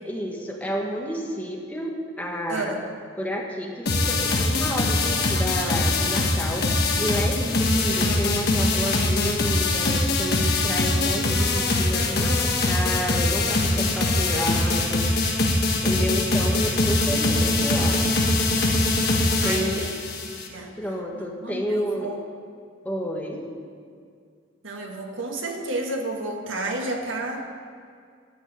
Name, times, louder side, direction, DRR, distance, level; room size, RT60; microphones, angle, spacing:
voice 1, 0.0-2.7 3.2-6.7 7.0-15.0 15.8-18.0 19.4-19.8 20.8-22.1 22.8-23.5, equal, 10° left, -1 dB, 1.4 m, -30 dB
sound 1, 3.9-20.5, left 2 dB, 50° left, 1.3 m, -22 dB
voice 2, 19.4-19.9 20.2-20.8 21.1-22.2 24.6-27.6, right 2 dB, 75° right, 2 dB, 1.7 m, -31 dB
12.0 x 6.5 x 8.9 m, 2.2 s
head